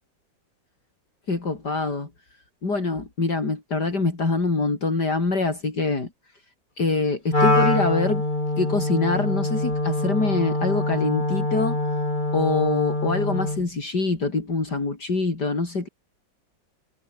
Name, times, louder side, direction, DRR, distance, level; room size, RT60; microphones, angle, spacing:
voice 1, 1.3-2.1 2.6-6.1 6.8-8.2 8.6-11.8 12.3-15.9, left 3 dB, 60° left, 4.9 m, -24 dB
Wind instrument woodwind instrument, 7.3-13.7, left 2 dB, 25° left, 4.4 m, -24 dB
omnidirectional pair, 2.0 m